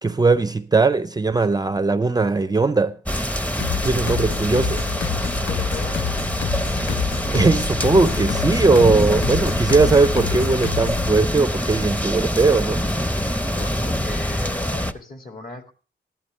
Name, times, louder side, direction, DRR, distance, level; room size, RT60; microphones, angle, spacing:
voice 1, 0.0-3.0 3.6-4.8 7.3-12.8, right 3 dB, 20° right, 0.5 m, -19 dB
sound 1, 3.1-14.9, equal, 10° left, 0.7 m, -25 dB
sound 2, 3.6-11.1, left 8 dB, 75° left, 0.7 m, -28 dB
voice 2, 5.5-6.0 13.5-15.7, left 3 dB, 50° left, 2.3 m, -37 dB
14.5 x 11.5 x 3.1 m
cardioid pair, 90°, 19 cm